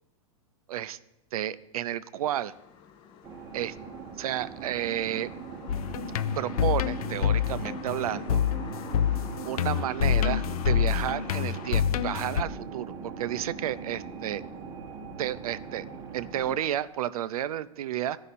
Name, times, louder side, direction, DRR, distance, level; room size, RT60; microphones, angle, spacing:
voice 1, 1.3-2.5 3.5-3.8 4.2-5.3 6.4-8.4 9.4-14.4 15.2-15.9 16.1-18.2, right 12 dB, 80° right, 16 dB, 0.5 m, -31 dB
sound 1, 2.2-11.8, left 8 dB, 25° left, 0.5 m, -47 dB
sound 2, 3.2-16.6, right 5 dB, 15° right, 0.7 m, -40 dB
sound 3, 5.7-12.4, left 9 dB, 80° left, 0.4 m, -27 dB
14.5 x 5.5 x 4.1 m, 0.89 s
supercardioid pair, 155°, 18 cm